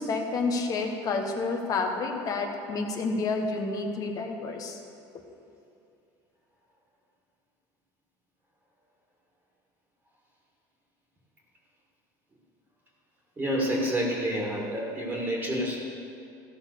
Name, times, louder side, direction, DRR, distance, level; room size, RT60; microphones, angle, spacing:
voice 1, 0.0-4.8, left 3 dB, 40° left, 4 dB, 1.2 m, -29 dB
voice 2, 13.4-15.8, equal, 20° right, -3 dB, 1.9 m, -28 dB
15.0 x 5.4 x 6.8 m, 2.6 s
cardioid pair, 130°, 9 cm